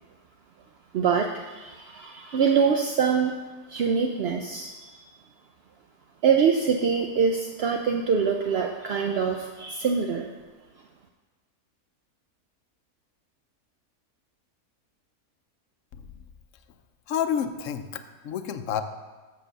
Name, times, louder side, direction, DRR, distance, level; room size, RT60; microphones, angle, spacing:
voice 1, 0.9-3.3 3.7-5.0 6.2-10.3, right 6 dB, 65° right, 3 dB, 0.6 m, -24 dB
voice 2, 17.1-18.8, left 8 dB, 65° left, 9 dB, 0.9 m, -29 dB
7.6 x 6.7 x 6.5 m, 1.3 s
omnidirectional pair, 1.6 m